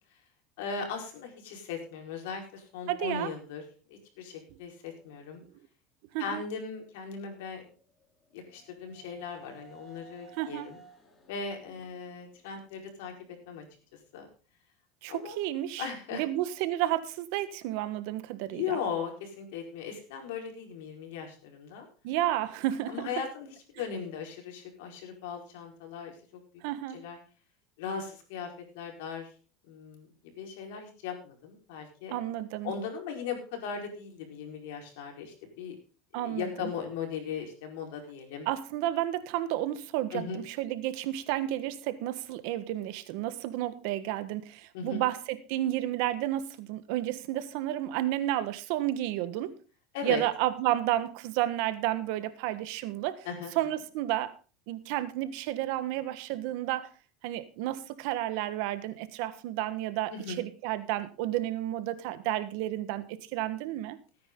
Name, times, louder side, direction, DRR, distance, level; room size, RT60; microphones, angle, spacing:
voice 1, 0.6-3.6 3.9-5.4 6.2-7.6 8.3-10.8 11.3-13.1 13.5-13.6 14.1-14.3 15.1-15.4 15.8-16.2 18.5-21.9 22.9-26.1 26.9-27.2 27.8-28.5 28.7-29.3 29.7-30.1 30.4-32.1 32.6-35.8 36.1-38.5 40.1-40.4 44.7-45.0 49.9-50.2 53.2-53.5 60.1-60.4, left 6 dB, 80° left, 2 dB, 4.6 m, -38 dB
voice 2, 2.9-3.3 6.1-6.4 10.4-10.7 15.0-18.8 22.0-23.1 26.6-27.0 32.1-32.7 36.1-36.7 38.5-49.5 50.0-53.2 53.5-54.3 54.7-56.9 57.2-63.0 63.3-64.0, right 14 dB, 70° right, 13 dB, 1.3 m, -31 dB
sound 1, 7.8-13.5, right 3 dB, 25° left, 3.6 m, -57 dB
17.5 x 9.5 x 3.8 m, 0.37 s
supercardioid pair, 115°, 0 cm